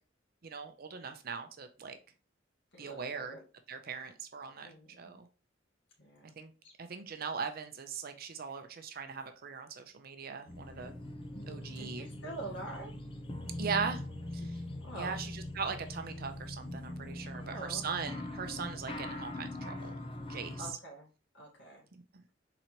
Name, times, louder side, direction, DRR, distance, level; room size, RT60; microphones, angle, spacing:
voice 1, 0.4-2.0 2.8-3.4 3.7-5.3 6.4-6.5 6.8-10.9 11.5-12.1 13.6-14.0 14.3-14.6 14.9-19.9 20.3-20.7 21.9-22.0, right 5 dB, 50° right, 7 dB, 0.6 m, -40 dB
voice 2, 2.7-3.4 4.6-5.2 6.0-6.4 6.6-6.7 11.8-12.9 14.8-15.2 17.3-17.8 20.6-21.1 21.3-21.9, right 1 dB, 65° left, -2 dB, 1.9 m, -46 dB
sound 1, 10.5-20.7, left 1 dB, 30° left, 0.6 m, -42 dB
4.4 x 3.9 x 2.9 m, 0.35 s
head